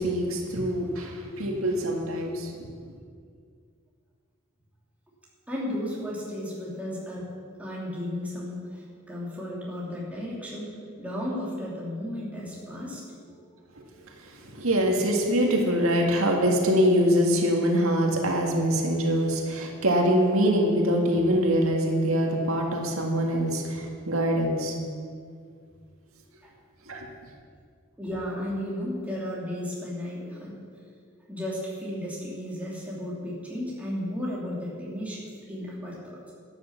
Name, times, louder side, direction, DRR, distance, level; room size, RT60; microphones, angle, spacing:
voice 1, 0.0-2.7 13.8-13.9 14.3-24.8 26.9-27.1, equal, 85° right, 1 dB, 1.9 m, -24 dB
voice 2, 5.5-7.3 7.6-13.5 26.4-26.5 28.0-30.6 31.3-36.3, left 1 dB, 5° right, -6 dB, 2.9 m, -34 dB
11.5 x 9.3 x 7.3 m, 2.1 s
head